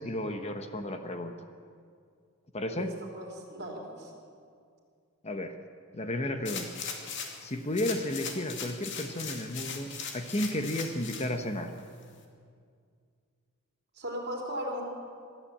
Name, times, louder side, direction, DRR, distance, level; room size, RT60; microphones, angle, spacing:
voice 1, 0.0-1.3 2.5-2.9 5.2-5.5 5.9-6.7 7.4-11.7, left 1 dB, 30° left, 7 dB, 1.1 m, -33 dB
voice 2, 2.7-4.1 13.9-14.8, equal, 50° right, 0 dB, 4.2 m, -37 dB
sound 1, 6.5-7.4 7.7-11.3 11.8-11.9, left 6 dB, 60° left, 2.5 m, -39 dB
22.5 x 13.5 x 8.7 m, 2.2 s
head